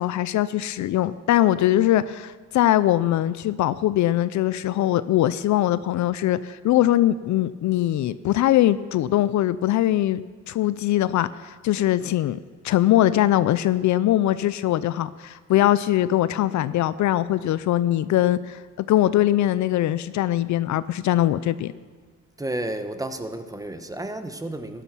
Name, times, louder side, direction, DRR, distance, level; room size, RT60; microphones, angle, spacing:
voice 1, 0.0-12.4 12.6-21.7, left 13 dB, 70° left, 16 dB, 0.5 m, -21 dB
voice 2, 22.4-24.8, right 1 dB, 10° right, 8 dB, 1.2 m, -31 dB
13.5 x 11.0 x 6.1 m, 1.5 s
cardioid pair, 90°, 30 cm